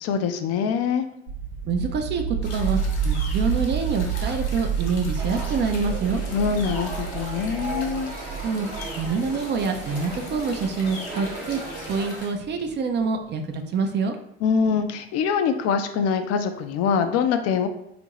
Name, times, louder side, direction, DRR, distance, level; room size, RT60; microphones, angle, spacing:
voice 1, 0.0-1.1 6.3-8.2 14.4-17.7, left 6 dB, 55° left, 8 dB, 0.4 m, -24 dB
sound 1, 1.3-12.0, right 7 dB, 85° right, 0.7 m, -29 dB
voice 2, 1.6-2.8 3.0-6.2 8.4-8.7 8.9-14.2, right 4 dB, 35° right, 6 dB, 0.4 m, -26 dB
sound 2, 2.4-12.3, left 3 dB, 85° left, 0.8 m, -42 dB
sound 3, 5.2-12.2, right 2 dB, 55° right, 1.0 m, -37 dB
2.6 x 2.4 x 2.9 m, 0.74 s
hypercardioid pair, 70°, 31 cm